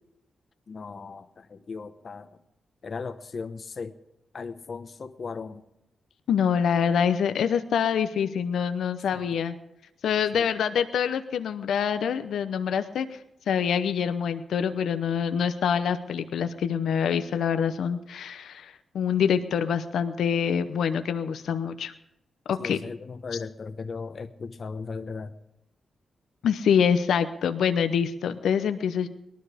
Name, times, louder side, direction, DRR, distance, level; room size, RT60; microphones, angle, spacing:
voice 1, 0.7-2.4 2.8-4.0 4.3-5.7 9.1-9.4 10.3-10.5 22.6-25.4, left 4 dB, 55° left, 9 dB, 0.9 m, -37 dB
voice 2, 6.3-9.6 10.0-13.2 13.5-21.9 22.5-22.8 26.4-29.1, left 7 dB, 80° left, 10 dB, 0.8 m, -25 dB
19.0 x 12.5 x 5.1 m, 0.87 s
supercardioid pair, 55°, 0 cm